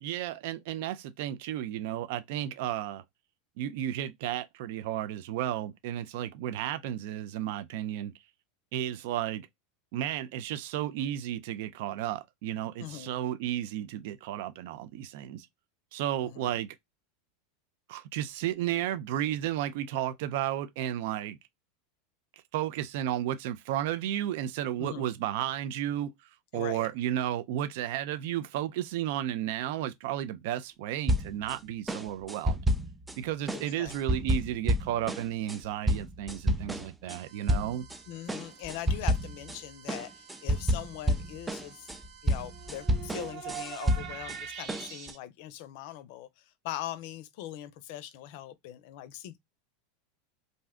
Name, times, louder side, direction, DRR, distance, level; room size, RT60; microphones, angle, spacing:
voice 1, 0.0-3.0 3.6-8.1 8.7-9.5 9.9-15.5 15.9-16.7 17.9-21.4 22.5-26.1 26.5-32.6 33.2-37.8, right 12 dB, 70° right, 0.4 m, -33 dB
voice 2, 12.8-13.1 16.2-16.6 24.8-25.1 26.5-26.9 33.5-33.9 38.1-41.9 42.2-49.4, left 13 dB, 65° left, 0.5 m, -41 dB
sound 1, 31.1-31.6 31.9-33.2 33.5-37.2 37.5-38.0 38.3-39.6 39.9-44.4 44.7-45.1, equal, 10° right, 0.4 m, -29 dB
sound 2, 37.2-45.2, right 8 dB, 45° right, 0.8 m, -46 dB
2.6 x 2.2 x 3.5 m
supercardioid pair, 115°, 0 cm